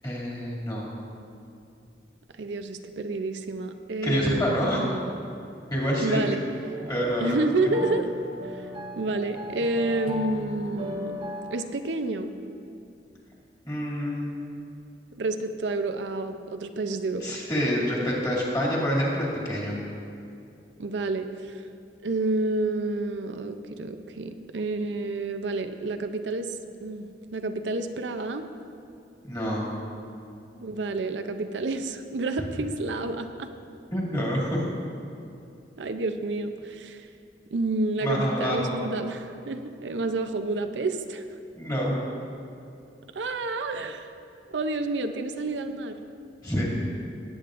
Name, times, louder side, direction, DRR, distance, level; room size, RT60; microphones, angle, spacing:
voice 1, 0.0-0.9 4.0-5.0 5.7-6.2 6.9-7.4 13.6-14.4 17.2-19.8 29.2-29.7 33.9-34.6 38.0-38.8 41.5-42.0 46.4-46.6, equal, 20° left, -5 dB, 2.4 m, -27 dB
voice 2, 2.4-5.1 6.0-6.4 7.2-8.1 8.5-8.6 8.9-11.2 11.5-12.3 15.2-17.4 20.8-21.6 22.0-26.5 26.8-28.4 30.6-33.5 35.8-37.1 37.5-41.2 43.1-44.1 44.5-46.0, right 2 dB, 90° right, 8 dB, 0.6 m, -29 dB
sound 1, 6.6-11.6, left 1 dB, 30° right, 0.8 m, -36 dB
18.0 x 8.5 x 2.5 m, 2.5 s
head